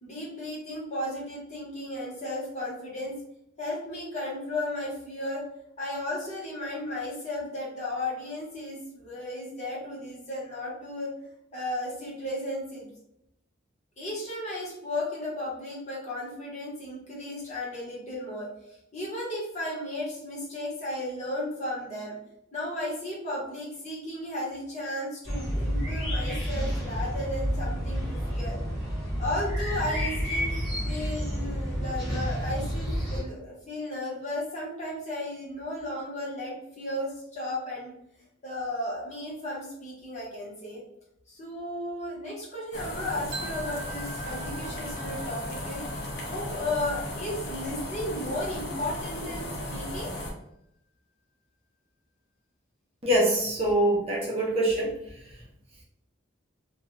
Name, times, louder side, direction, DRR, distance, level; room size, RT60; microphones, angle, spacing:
voice 1, 0.0-3.2 3.6-5.5 5.8-11.1 11.5-12.9 14.0-22.2 22.5-28.6 29.2-37.9 38.4-40.8 41.3-50.1, left 1 dB, 35° left, -5 dB, 0.9 m, -34 dB
sound 1, 25.2-33.2, equal, ahead, 0.8 m, -30 dB
sound 2, 42.7-50.3, left 1 dB, 55° left, 0.6 m, -36 dB
sound 3, 43.3-49.2, right 3 dB, 60° right, 0.8 m, -44 dB
voice 2, 53.0-54.9, right 1 dB, 30° right, -4 dB, 0.5 m, -24 dB
2.3 x 2.2 x 3.0 m, 0.79 s
head